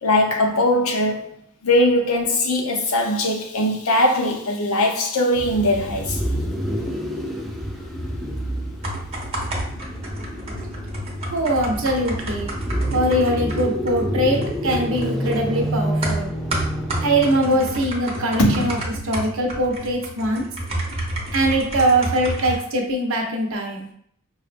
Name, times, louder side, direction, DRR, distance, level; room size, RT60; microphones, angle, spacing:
voice 1, 0.0-1.4 1.6-6.2 18.4-18.7, left 1 dB, 75° left, 0.7 m, -20 dB
sound 1, 5.4-17.5, equal, ahead, 0.3 m, -28 dB
sound 2, 8.6-22.5, right 1 dB, 30° right, 0.8 m, -31 dB
voice 2, 11.3-12.5 12.9-16.3 17.0-18.8 19.0-20.5 21.3-23.9, right 1 dB, 70° right, 0.7 m, -22 dB
4.7 x 2.1 x 2.5 m
head